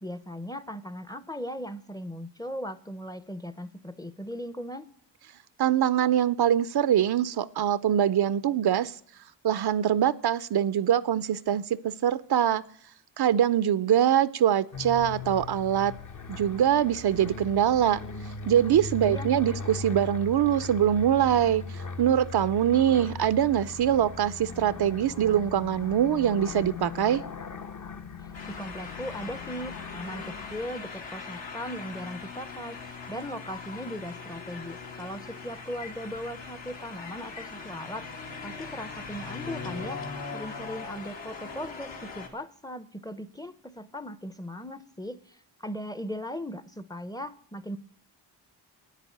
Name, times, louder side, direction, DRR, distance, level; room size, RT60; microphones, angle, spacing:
voice 1, 0.0-4.9 19.0-19.3 28.5-32.8 33.1-38.1 38.4-40.0 40.3-47.8, equal, 10° left, 15 dB, 0.6 m, -38 dB
voice 2, 5.6-8.9 9.4-12.6 13.2-15.9 16.3-18.0 18.5-27.2, right 10 dB, 60° right, 16 dB, 0.5 m, -23 dB
sound 1, 14.7-30.7, left 4 dB, 40° left, 0.9 m, -39 dB
sound 2, 28.3-42.3, left 4 dB, 75° left, 2.2 m, -40 dB
9.5 x 8.3 x 9.2 m, 0.64 s
cardioid pair, 70°, 44 cm